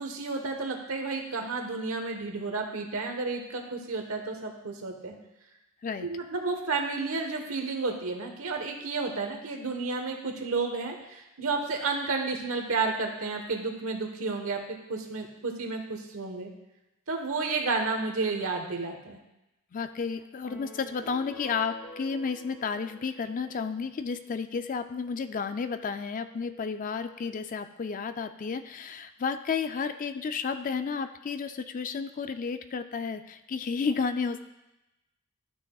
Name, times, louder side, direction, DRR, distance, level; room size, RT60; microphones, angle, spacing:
voice 1, 0.0-5.2 6.0-16.5 17.1-19.2, right 3 dB, 70° right, 3 dB, 1.2 m, -31 dB
voice 2, 19.7-34.4, left 5 dB, 35° left, 10 dB, 0.3 m, -32 dB
sound 1, 20.5-24.0, left 1 dB, 75° left, 1.4 m, -47 dB
12.5 x 6.2 x 2.3 m, 0.95 s
head